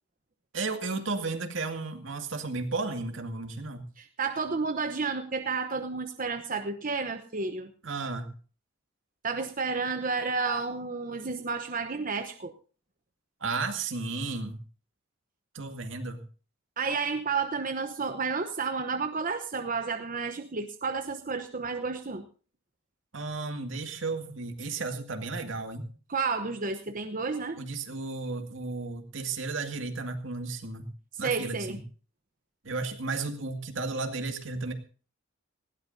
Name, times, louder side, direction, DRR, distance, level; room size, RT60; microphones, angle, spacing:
voice 1, 0.5-3.8 7.8-8.4 13.4-14.6 15.5-16.2 23.1-25.9 27.6-30.9 31.2-31.8 32.6-34.7, right 3 dB, 70° right, 6 dB, 2.3 m, -33 dB
voice 2, 4.0-7.7 9.2-12.5 16.8-22.2 26.1-27.6 31.1-31.8, right 4 dB, 45° right, 7 dB, 0.9 m, -31 dB
19.5 x 17.0 x 2.7 m, 0.38 s
head